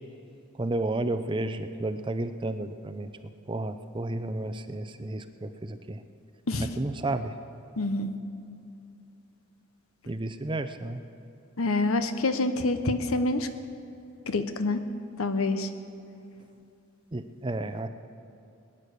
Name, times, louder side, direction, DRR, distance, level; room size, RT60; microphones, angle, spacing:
voice 1, 0.5-3.1 3.5-6.0 6.6-7.4 10.1-11.0 17.1-17.9, right 2 dB, 20° right, 10 dB, 0.5 m, -32 dB
voice 2, 7.8-8.1 11.6-13.5 14.3-14.8 15.2-15.7, left 2 dB, 75° left, 9 dB, 0.9 m, -26 dB
20.5 x 10.0 x 6.6 m, 2.6 s
head